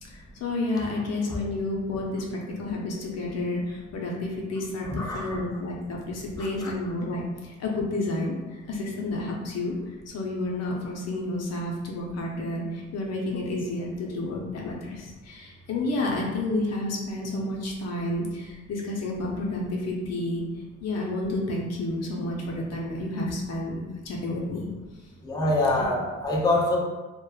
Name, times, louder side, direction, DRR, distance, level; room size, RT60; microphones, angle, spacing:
voice 1, 0.0-20.4 20.8-24.7 25.7-25.9, left 2 dB, 55° left, -1 dB, 0.6 m, -30 dB
voice 2, 4.8-5.4 6.4-6.7 25.2-26.8, left 2 dB, 15° left, -3 dB, 0.5 m, -25 dB
2.8 x 2.2 x 2.3 m, 1.2 s
cardioid pair, 90°, 30 cm